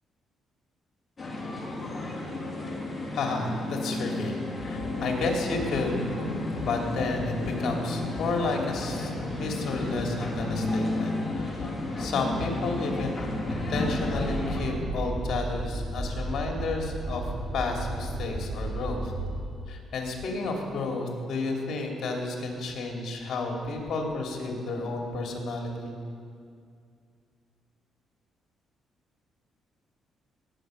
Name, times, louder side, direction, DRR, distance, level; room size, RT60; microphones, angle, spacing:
sound 1, 1.2-14.6, left 2 dB, 25° left, 2.6 m, -32 dB
voice 1, 3.1-6.0 6.6-11.7 12.0-19.1 19.7-25.9, left 3 dB, 60° left, 1 dB, 2.7 m, -31 dB
sound 2, 13.4-19.3, right 1 dB, 70° right, 4.0 m, -34 dB
20.0 x 8.1 x 6.4 m, 2.3 s
cardioid pair, 90°, 0 cm